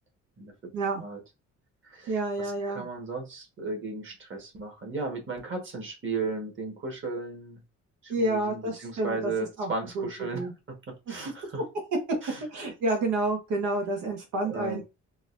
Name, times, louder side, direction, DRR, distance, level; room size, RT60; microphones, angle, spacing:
voice 1, 0.4-0.7 1.0-1.2 1.8-7.6 8.0-11.6 12.2-12.4 14.4-14.8, right 3 dB, 40° right, 1 dB, 1.5 m, -35 dB
voice 2, 2.1-2.8 8.1-9.3 9.6-10.1 10.3-10.5 11.1-11.2 12.5-14.8, right 2 dB, 85° right, 2 dB, 1.1 m, -29 dB
3.9 x 2.4 x 2.6 m, 0.27 s
cardioid pair, 90°, 30 cm